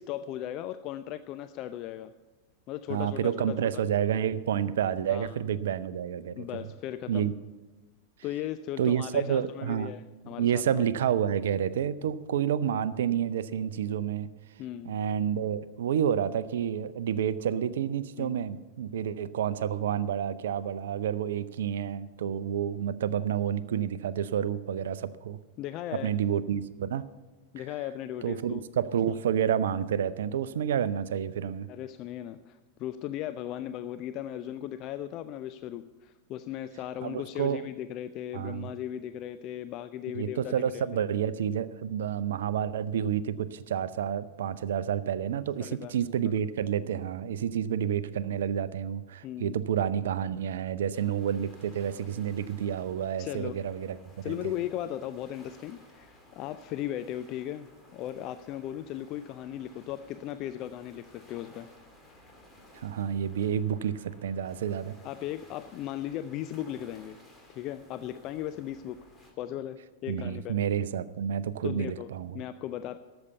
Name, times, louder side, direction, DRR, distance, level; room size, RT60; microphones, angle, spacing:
voice 1, 0.0-2.1 2.7-3.8 5.1-5.3 6.4-7.3 8.2-10.8 14.6-14.9 18.2-18.4 25.6-26.1 27.5-28.6 31.7-40.8 45.6-46.0 49.2-49.6 53.2-53.5 54.2-61.7 65.0-67.2 67.5-69.0 69.4-70.6 71.6-72.1 72.3-73.0, left 12 dB, 40° left, 11 dB, 0.4 m, -37 dB
voice 2, 2.9-6.6 7.1-7.3 8.8-9.9 10.4-14.3 14.9-25.4 26.0-27.0 28.2-31.7 37.0-37.6 38.3-38.7 40.2-54.4 62.7-65.0 70.1-72.4, right 9 dB, 60° right, 17 dB, 0.5 m, -29 dB
sound 1, 50.9-69.3, left 1 dB, 10° left, 2.4 m, -56 dB
13.0 x 7.1 x 8.1 m, 1.2 s
figure-of-eight pair, 90°, 0 cm